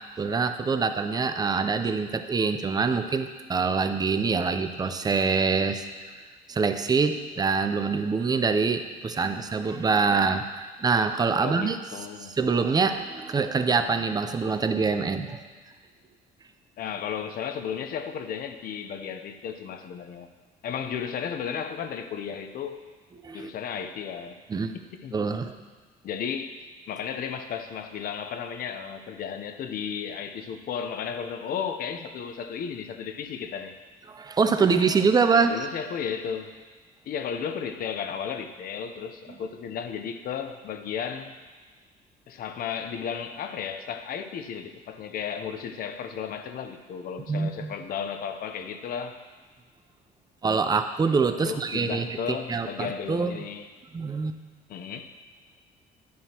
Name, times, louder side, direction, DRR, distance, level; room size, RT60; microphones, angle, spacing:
voice 1, 0.2-5.9 6.5-11.8 12.4-15.4 23.2-23.5 24.5-24.8 25.1-25.6 34.1-35.6 47.3-47.7 50.4-53.4 53.9-54.4, right 5 dB, 25° right, 8 dB, 0.6 m, -25 dB
voice 2, 11.4-12.3 16.8-20.3 20.6-22.8 23.3-24.4 25.0-25.2 26.0-33.7 35.3-36.6 37.0-41.4 42.3-49.2 51.4-53.7 54.7-55.1, left 7 dB, 60° left, 8 dB, 0.7 m, -34 dB
10.5 x 9.5 x 2.9 m, 1.4 s
cardioid pair, 110°, 17 cm